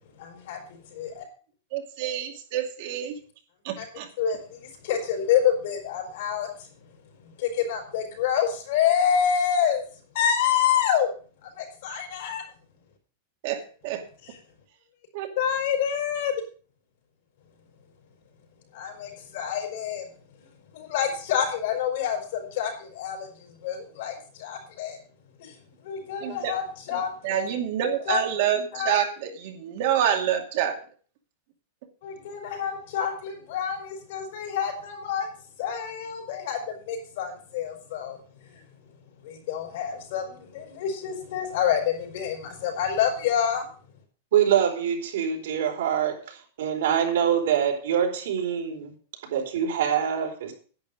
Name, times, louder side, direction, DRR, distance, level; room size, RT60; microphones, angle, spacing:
voice 1, 0.2-0.6 0.9-1.2 3.8-3.9 4.2-6.5 7.4-9.8 10.1-11.1 11.6-12.4 15.4-16.4 18.7-20.0 20.7-25.0 25.4-25.5 25.8-27.5 28.1-28.5 28.7-29.0 32.0-35.3 35.6-38.2 39.2-43.7, left 8 dB, 50° left, 3 dB, 4.6 m, -27 dB
voice 2, 1.7-3.2 3.6-4.1 13.4-14.0 15.1-15.3 26.2-26.5 26.9-30.8, right 10 dB, 45° right, 4 dB, 2.3 m, -27 dB
voice 3, 44.3-48.9 49.3-50.5, right 9 dB, 70° right, 1 dB, 4.2 m, -25 dB
11.0 x 9.4 x 5.2 m, 0.41 s
supercardioid pair, 175°, 0 cm